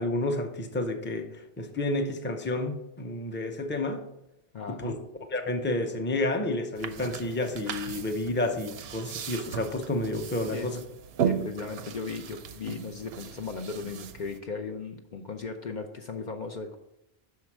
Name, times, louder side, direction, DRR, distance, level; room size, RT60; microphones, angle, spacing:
voice 1, 0.0-4.0 4.8-4.9 5.3-10.8, left 2 dB, 15° left, 5 dB, 0.6 m, -30 dB
voice 2, 4.5-4.9 10.5-10.7 11.2-16.8, left 4 dB, 55° left, 4 dB, 0.7 m, -37 dB
sound 1, 6.8-14.4, right 8 dB, 80° right, 0.8 m, -36 dB
6.2 x 4.7 x 6.0 m, 0.83 s
omnidirectional pair, 1.0 m